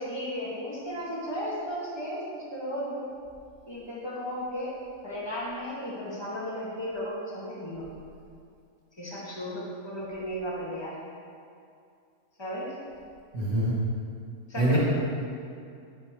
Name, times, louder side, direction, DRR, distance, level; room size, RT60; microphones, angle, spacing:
voice 1, 0.0-3.1 3.7-4.7 5.0-8.1 9.0-11.0 12.4-12.7 14.5-14.8, equal, 20° left, -7 dB, 2.2 m, -35 dB
voice 2, 13.3-13.7 14.6-14.8, right 1 dB, 75° right, -7 dB, 2.6 m, -24 dB
11.5 x 11.0 x 3.3 m, 2.4 s
omnidirectional pair, 1.5 m